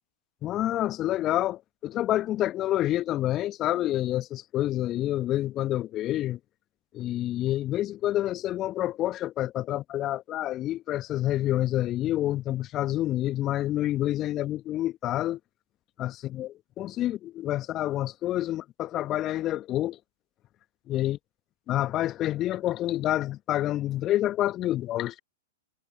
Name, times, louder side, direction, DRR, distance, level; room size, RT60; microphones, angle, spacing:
voice 1, 0.4-6.4 6.9-15.4 16.0-20.0 20.9-21.2 21.7-25.2, left 14 dB, 30° left, 1.1 m, -28 dB
figure-of-eight pair, 100°, 0 cm